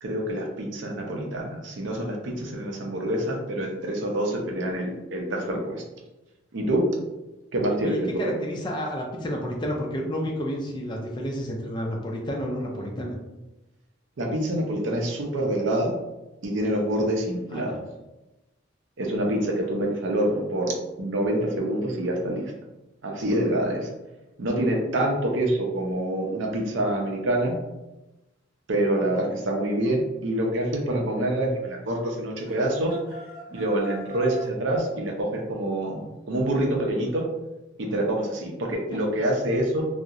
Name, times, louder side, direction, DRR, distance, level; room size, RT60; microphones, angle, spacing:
voice 1, 0.0-5.8 6.5-6.9 7.5-8.3 14.2-15.9 16.4-17.8 19.0-22.5 23.0-23.9 24.4-27.6 28.7-33.0 33.5-37.3 37.8-39.9, right 1 dB, 70° right, 0 dB, 0.5 m, -26 dB
voice 2, 7.8-13.1 17.5-17.7 29.1-29.2 38.9-39.0, equal, 25° left, 0 dB, 0.4 m, -31 dB
sound 1, 32.4-34.6, left 1 dB, 25° right, 0.9 m, -40 dB
2.7 x 2.0 x 2.3 m, 1.0 s
head